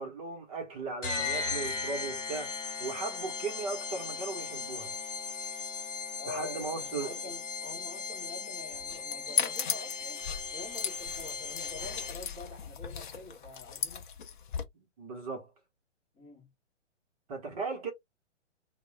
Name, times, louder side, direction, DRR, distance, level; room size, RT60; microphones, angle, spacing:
voice 1, 0.0-5.0 6.3-7.1 14.7-15.5 17.3-17.9, right 4 dB, 30° right, 0.9 m, -37 dB
sound 1, 1.0-12.4, left 5 dB, 80° left, 0.9 m, -37 dB
voice 2, 6.2-10.2 10.5-14.1 16.1-16.5, left 3 dB, 15° left, 0.8 m, -46 dB
sound 2, 8.7-14.6, left 7 dB, 40° left, 0.6 m, -36 dB
2.2 x 2.1 x 3.2 m
figure-of-eight pair, 125°, 37 cm